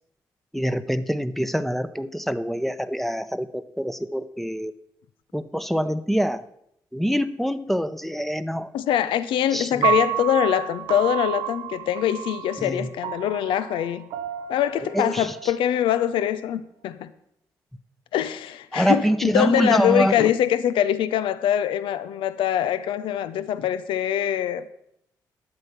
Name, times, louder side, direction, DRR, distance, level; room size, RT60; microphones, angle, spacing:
voice 1, 0.5-4.7 5.3-6.4 6.9-8.7 9.5-9.9 12.6-12.9 14.9-15.3 18.7-20.3, equal, ahead, 0.8 m, -25 dB
voice 2, 8.7-14.1 14.5-17.1 18.1-24.6, left 10 dB, 80° left, 0.5 m, -23 dB
Piano, 9.8-16.0, right 11 dB, 85° right, 0.5 m, -30 dB
10.5 x 7.7 x 5.8 m
supercardioid pair, 45°, 9 cm